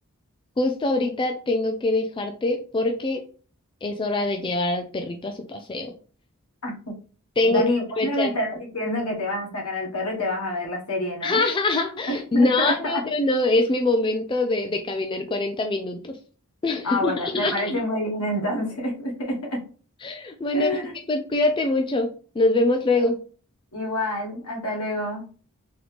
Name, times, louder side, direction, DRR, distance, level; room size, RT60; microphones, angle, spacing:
voice 1, 0.6-3.2 3.8-5.9 7.4-7.6 8.0-8.3 11.2-16.2 16.6-17.8 20.0-20.7 21.1-22.1 22.4-23.2, left 2 dB, 20° left, 5 dB, 0.3 m, -24 dB
voice 2, 6.6-7.0 7.4-11.4 12.1-13.0 16.8-19.6 20.5-21.0 23.7-25.3, left 1 dB, 80° left, -1 dB, 1.4 m, -28 dB
3.9 x 3.1 x 3.3 m, 0.39 s
head